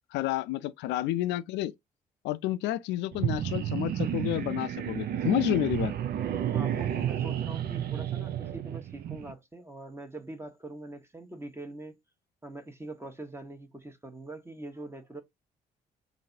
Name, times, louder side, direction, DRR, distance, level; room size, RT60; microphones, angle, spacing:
voice 1, 0.1-1.7 2.2-5.9, left 14 dB, 65° left, 0.4 m, -30 dB
sound 1, 3.1-9.3, right 10 dB, 55° right, 0.5 m, -31 dB
voice 2, 6.4-12.0 12.4-15.2, right 2 dB, 15° right, 1.1 m, -43 dB
3.9 x 2.6 x 2.6 m
hypercardioid pair, 45°, 19 cm